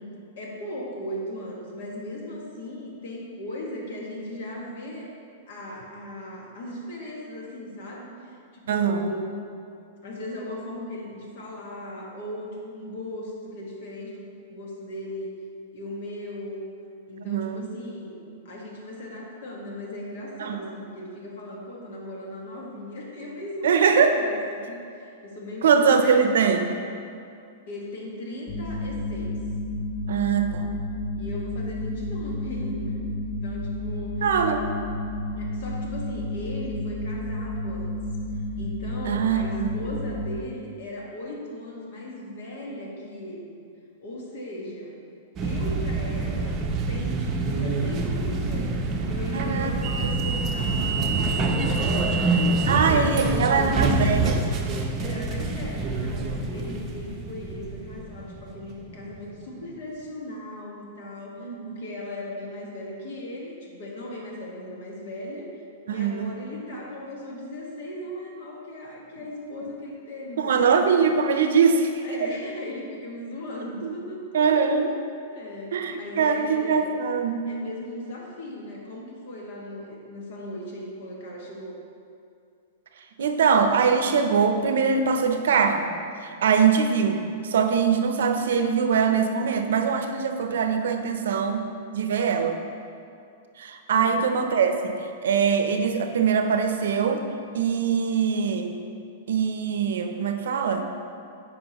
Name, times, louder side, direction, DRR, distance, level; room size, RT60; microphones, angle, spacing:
voice 1, 0.4-5.1 5.5-9.4 10.0-15.3 15.7-16.6 17.1-25.6 26.0-26.3 27.7-29.4 31.1-34.3 35.4-37.9 38.6-43.6 44.0-45.0 45.4-53.9 55.0-65.6 65.9-70.7 72.0-74.9 75.3-76.9 77.5-81.7 93.9-94.2, left 1 dB, 65° left, -2 dB, 1.6 m, -38 dB
voice 2, 8.7-9.1 17.2-17.7 20.4-20.7 23.6-24.2 25.6-26.7 30.1-30.7 34.2-34.6 39.1-39.7 49.3-49.7 52.7-54.5 61.4-61.8 65.9-66.3 70.4-72.3 73.8-73.9 74.3-74.9 75.7-77.5 83.2-85.9 86.2-91.6 91.9-92.6 93.6-97.2 97.5-98.8 99.3-100.8, right 6 dB, 80° right, 6 dB, 0.6 m, -22 dB
sound 1, 28.5-40.4, left 1 dB, 25° left, 0.6 m, -31 dB
sound 2, 45.4-59.3, right 3 dB, 25° right, 0.6 m, -26 dB
9.3 x 4.9 x 3.0 m, 2.4 s
supercardioid pair, 155°, 0 cm